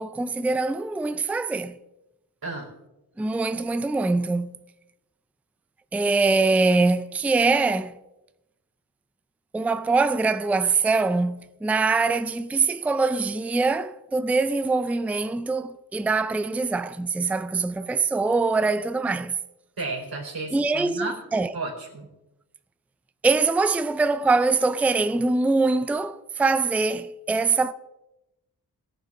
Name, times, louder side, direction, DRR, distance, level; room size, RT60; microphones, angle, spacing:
voice 1, 0.0-1.8 3.2-4.6 5.9-8.0 9.5-19.4 20.5-21.5 23.2-27.7, right 3 dB, 5° right, 0.4 m, -23 dB
voice 2, 19.8-21.2 21.5-22.1, right 3 dB, 65° right, 4.1 m, -33 dB
17.5 x 10.0 x 3.7 m
wide cardioid pair, 100°, 39 cm